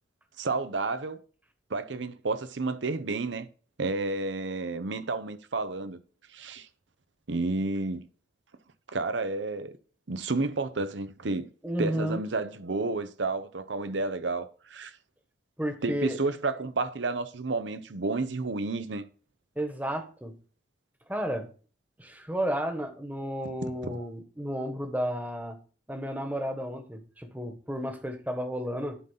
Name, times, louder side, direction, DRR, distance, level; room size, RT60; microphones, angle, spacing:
voice 1, 0.4-1.2 1.7-3.5 3.8-6.0 6.3-6.7 7.3-8.0 8.9-9.7 10.1-11.5 11.8-14.9 15.8-19.0 23.6-24.1, right 3 dB, 80° right, 0.8 m, -31 dB
voice 2, 11.6-12.2 15.6-16.2 19.6-20.4 21.1-21.5 22.0-25.6 25.9-29.0, equal, 10° right, 1.2 m, -32 dB
11.5 x 3.9 x 5.7 m
head